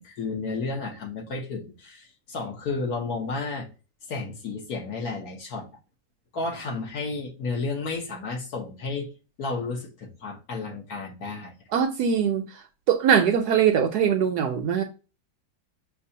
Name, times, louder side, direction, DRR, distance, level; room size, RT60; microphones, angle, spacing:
voice 1, 0.0-3.7 4.1-5.7 6.3-9.1 9.4-11.5, left 3 dB, 60° left, 1.3 m, -32 dB
voice 2, 11.7-12.5 12.9-14.8, right 8 dB, 70° right, 1.0 m, -21 dB
6.6 x 2.4 x 2.7 m
omnidirectional pair, 2.0 m